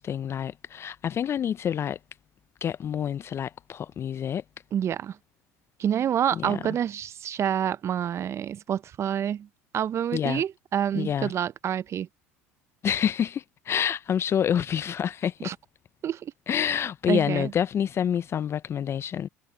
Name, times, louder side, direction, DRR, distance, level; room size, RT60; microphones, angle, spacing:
voice 1, 0.0-2.0 2.6-4.4 6.3-6.6 10.1-10.4 10.9-11.3 12.8-15.5 16.5-19.3, left 9 dB, 40° left, 0.5 m, -27 dB
voice 2, 4.7-5.2 5.8-9.5 9.7-12.1 15.4-15.5 16.0-16.3 17.1-17.5, right 9 dB, 40° right, 0.8 m, -27 dB
hypercardioid pair, 75°, 7 cm